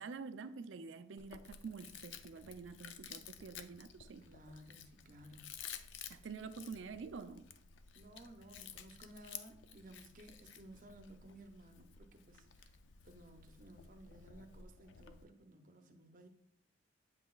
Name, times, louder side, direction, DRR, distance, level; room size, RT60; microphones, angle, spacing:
voice 1, 0.0-4.2 6.1-7.5, right 5 dB, 85° right, 0.4 m, -47 dB
Chewing mastication, 1.2-15.2, left 8 dB, 80° left, 0.4 m, -54 dB
voice 2, 4.2-5.5 7.9-12.8 13.0-16.3, right 1 dB, 45° right, 0.7 m, -57 dB
8.1 x 5.7 x 2.3 m
head